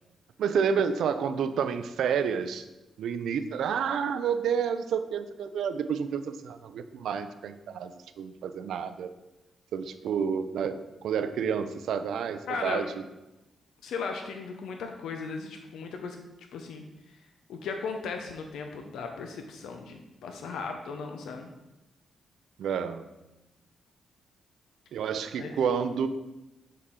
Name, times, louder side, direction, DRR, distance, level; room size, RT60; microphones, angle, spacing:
voice 1, 0.4-2.6 3.0-7.9 8.2-9.1 9.7-12.9 22.6-23.1 24.9-26.1, right 7 dB, 85° right, 10 dB, 0.4 m, -29 dB
voice 2, 12.5-12.9 13.8-16.2 16.5-16.8 17.5-21.5 25.4-25.5, left 4 dB, 85° left, 4 dB, 0.5 m, -36 dB
6.7 x 4.1 x 3.7 m, 0.98 s
cardioid pair, 75°, 0 cm